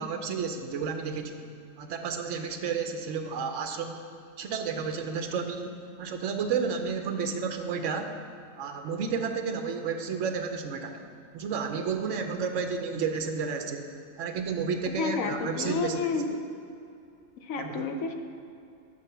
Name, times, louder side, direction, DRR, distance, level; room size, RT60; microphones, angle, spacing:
voice 1, 0.0-1.4 1.8-4.0 4.4-8.1 8.6-11.0 11.3-13.9 14.2-16.0 17.6-17.8, right 5 dB, 70° right, 6 dB, 1.0 m, -31 dB
voice 2, 14.9-16.4 17.4-18.1, left 4 dB, 85° left, 5 dB, 1.1 m, -30 dB
6.7 x 5.5 x 6.7 m, 2.5 s
omnidirectional pair, 1.4 m